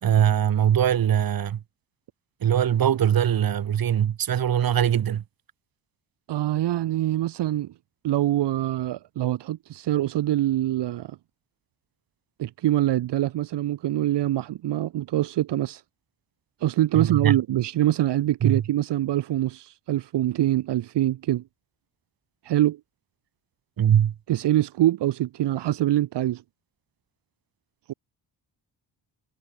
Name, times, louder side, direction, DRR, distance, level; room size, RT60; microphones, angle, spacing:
voice 1, 0.0-1.6 2.4-5.2 16.9-17.4 18.4-18.6 23.8-24.1, right 9 dB, 55° right, 2.7 m, -21 dB
voice 2, 6.3-7.7 8.0-11.2 12.4-15.8 16.6-21.4 22.4-22.8 24.3-26.4 27.9-28.0, right 14 dB, 75° right, 1.4 m, -24 dB
cardioid pair, 120°, 41 cm